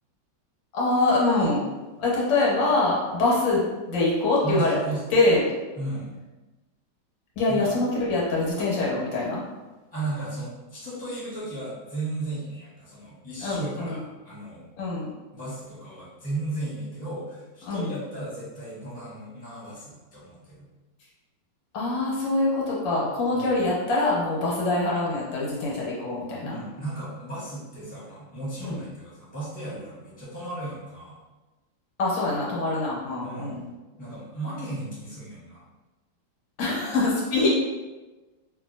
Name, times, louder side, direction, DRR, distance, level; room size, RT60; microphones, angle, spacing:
voice 1, 0.7-1.6 2.0-4.8 5.1-5.4 7.4-9.4 13.4-14.0 14.8-15.1 17.7-17.9 21.7-26.6 28.6-28.8 32.0-33.6 36.6-37.5, left 2 dB, 80° left, -5 dB, 1.5 m, -24 dB
voice 2, 4.4-5.0 5.7-6.1 7.5-7.7 9.9-14.7 15.3-20.7 23.3-23.6 26.4-31.2 33.2-33.6 34.0-35.6 37.4-37.5, right 2 dB, 5° left, -11 dB, 1.1 m, -35 dB
2.8 x 2.6 x 2.6 m, 1.2 s
omnidirectional pair, 2.0 m